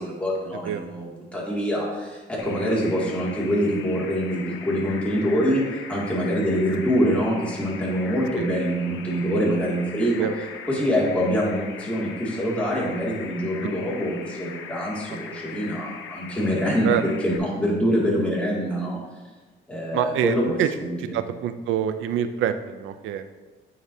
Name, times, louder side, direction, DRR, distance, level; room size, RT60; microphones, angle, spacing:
voice 1, 0.0-10.3 10.7-19.0 19.7-21.2, equal, 5° left, -5 dB, 2.2 m, -25 dB
sound 1, 2.4-17.4, left 6 dB, 85° left, 0.7 m, -40 dB
voice 2, 19.9-20.7 21.0-23.4, right 10 dB, 85° right, 11 dB, 0.5 m, -26 dB
9.3 x 4.7 x 2.7 m, 1.3 s
cardioid pair, 90°, 20 cm